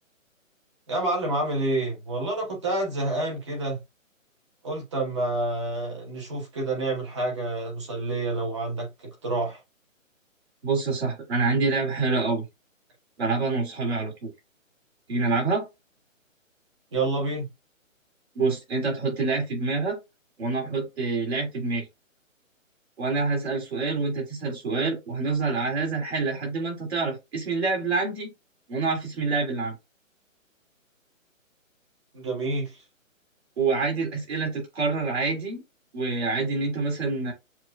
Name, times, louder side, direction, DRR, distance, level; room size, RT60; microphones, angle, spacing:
voice 1, 0.9-3.8 4.6-8.9 9.2-9.6 16.9-17.4 32.1-32.7, right 2 dB, 20° right, 1.1 m, -28 dB
voice 2, 10.6-12.4 13.2-14.3 15.1-15.7 18.3-20.0 20.4-21.9 23.0-28.3 28.7-29.7 33.6-35.6 35.9-37.3, right 3 dB, 50° right, 2.7 m, -26 dB
7.3 x 2.6 x 2.4 m
hypercardioid pair, 170°, 40 cm